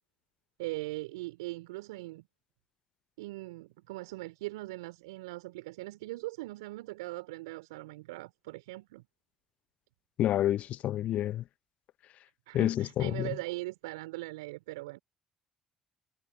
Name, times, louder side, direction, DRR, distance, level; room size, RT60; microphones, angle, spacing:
voice 1, 0.6-2.3 3.2-9.0 12.5-15.0, right 20 dB, 80° right, 4.4 m, -40 dB
voice 2, 10.2-11.4 12.5-13.3, left 12 dB, 60° left, 0.9 m, -28 dB
figure-of-eight pair, 50°, 3 cm